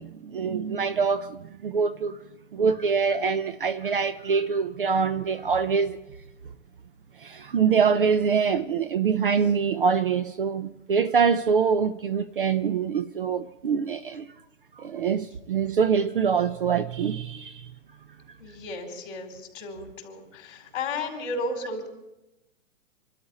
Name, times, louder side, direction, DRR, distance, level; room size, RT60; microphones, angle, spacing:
voice 1, 0.0-2.2 2.5-6.0 7.2-14.3 14.8-17.7, right 6 dB, 40° right, 0.5 m, -24 dB
voice 2, 18.4-21.9, left 2 dB, 40° left, 4.5 m, -34 dB
27.0 x 13.0 x 4.2 m
hypercardioid pair, 170°, 40 cm